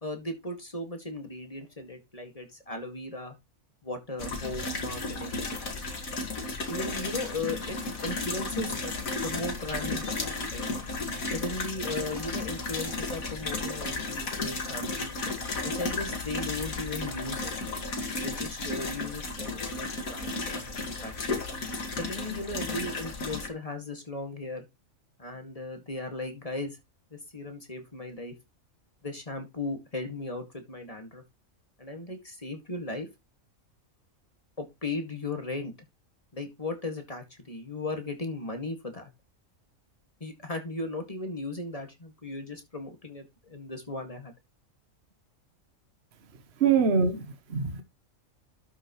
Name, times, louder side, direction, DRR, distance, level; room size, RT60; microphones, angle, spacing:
voice 1, 0.0-3.4 3.8-5.4 6.7-8.9 9.2-10.7 11.3-15.2 15.6-17.5 18.2-20.3 21.0-21.4 22.0-24.7 25.2-26.8 27.1-28.3 29.0-31.2 31.8-33.1 34.6-35.7 36.3-39.1 40.2-44.3, left 2 dB, 25° left, 2.1 m, -37 dB
sound 1, 4.2-23.5, left 3 dB, 85° left, 2.4 m, -34 dB
sound 2, 6.9-8.1 8.5-12.9 13.2-13.4 14.8-17.2, left 2 dB, 45° left, 3.4 m, -52 dB
voice 2, 46.3-47.8, right 6 dB, 55° right, 1.2 m, -25 dB
12.5 x 6.3 x 3.1 m
omnidirectional pair, 1.4 m